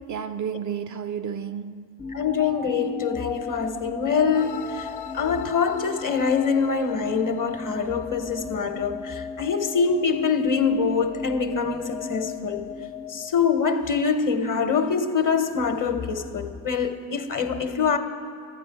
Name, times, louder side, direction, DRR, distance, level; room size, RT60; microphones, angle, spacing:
voice 1, 0.1-2.1, right 8 dB, 40° right, 0.5 m, -32 dB
sound 1, 2.0-14.1, left 5 dB, 15° left, 0.4 m, -38 dB
voice 2, 2.1-12.7 13.1-18.0, left 5 dB, 40° left, 1.1 m, -24 dB
sound 2, 4.3-8.3, left 6 dB, 60° left, 0.8 m, -41 dB
12.0 x 8.8 x 4.6 m
hypercardioid pair, 45°, 47 cm